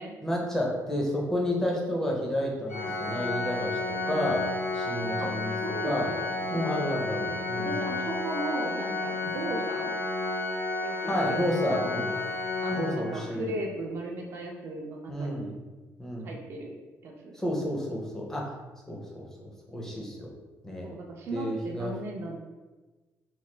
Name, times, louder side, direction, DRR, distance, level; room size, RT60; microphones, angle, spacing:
voice 1, 0.2-3.8 4.1-4.5 4.7-5.5 5.8-6.1 6.5-7.8 11.0-12.1 12.7-13.5 15.1-15.5 16.0-16.3 17.3-18.5 18.9-20.3 20.6-20.9 21.3-21.9, left 1 dB, 10° left, -2 dB, 0.5 m, -30 dB
Organ, 2.7-13.5, left 3 dB, 65° left, 0.6 m, -31 dB
voice 2, 5.6-6.2 7.5-9.9 10.8-12.2 12.6-15.5 16.2-16.8 17.0-17.4 20.8-22.4, right 2 dB, 50° right, 1 dB, 0.4 m, -37 dB
3.0 x 2.2 x 3.2 m, 1.2 s
cardioid pair, 175°, 5 cm